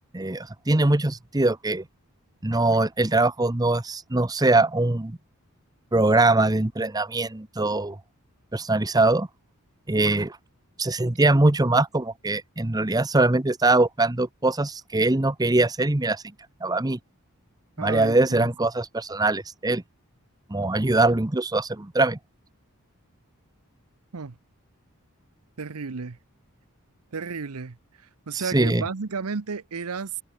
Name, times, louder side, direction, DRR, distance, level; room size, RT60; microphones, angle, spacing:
voice 1, 0.1-1.8 2.4-5.2 5.9-8.0 8.5-9.3 9.9-10.4 10.8-16.2 16.6-17.0 17.8-19.8 20.5-22.2 28.3-28.8, right 2 dB, 15° right, 0.8 m, -22 dB
voice 2, 17.8-18.5 24.1-24.4 25.6-26.2 27.1-30.2, right 5 dB, 80° right, 0.8 m, -33 dB
head